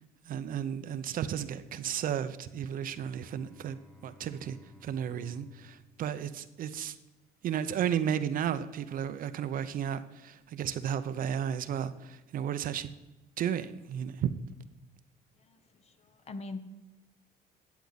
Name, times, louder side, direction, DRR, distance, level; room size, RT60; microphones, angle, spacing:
voice 1, 0.3-4.6 4.8-6.9 7.4-12.9 13.4-14.3, right 9 dB, 55° right, 12 dB, 0.7 m, -33 dB
Bowed string instrument, 2.7-7.0, left 2 dB, 5° left, 1.4 m, -59 dB
voice 2, 15.4-16.6, left 3 dB, 40° left, 10 dB, 1.0 m, -43 dB
13.0 x 8.1 x 4.1 m, 1.0 s
cardioid pair, 110°, 17 cm